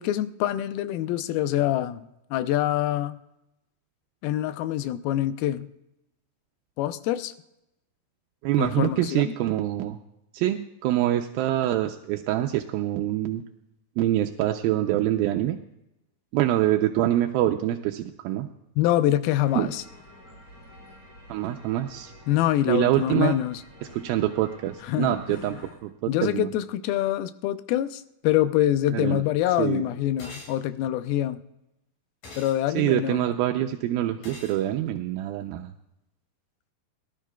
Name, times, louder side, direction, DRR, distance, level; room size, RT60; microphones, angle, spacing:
voice 1, 0.0-3.2 4.2-5.7 6.8-7.3 8.6-9.3 18.8-19.8 22.3-23.6 24.9-25.4 26.1-31.4 32.4-33.3, left 13 dB, 90° left, 12 dB, 2.5 m, -25 dB
voice 2, 8.4-10.0 10.3-13.4 14.0-15.6 16.3-18.5 19.5-19.7 21.3-22.1 22.7-23.4 23.9-26.5 28.9-29.2 29.6-29.8 32.7-35.7, right 13 dB, 85° right, 4 dB, 2.4 m, -25 dB
sound 1, 19.3-25.7, left 1 dB, 30° left, 4.5 m, -50 dB
sound 2, 30.2-30.6 32.2-32.6 34.2-34.6, left 2 dB, 65° left, 5.0 m, -43 dB
23.0 x 12.5 x 2.3 m, 0.89 s
omnidirectional pair, 4.2 m